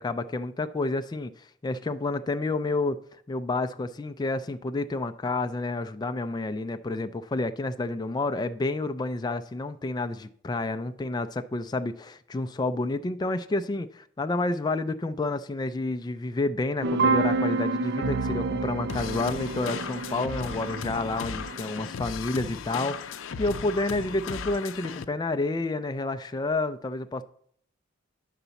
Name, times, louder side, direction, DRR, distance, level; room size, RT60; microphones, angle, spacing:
voice 1, 0.0-3.0 3.3-13.9 14.2-27.2, left 2 dB, 20° left, 0.3 m, -29 dB
sound 1, 16.8-21.8, right 3 dB, 55° right, 0.4 m, -29 dB
sound 2, 18.9-25.1, left 6 dB, 80° left, 0.5 m, -36 dB
10.0 x 4.0 x 6.9 m
head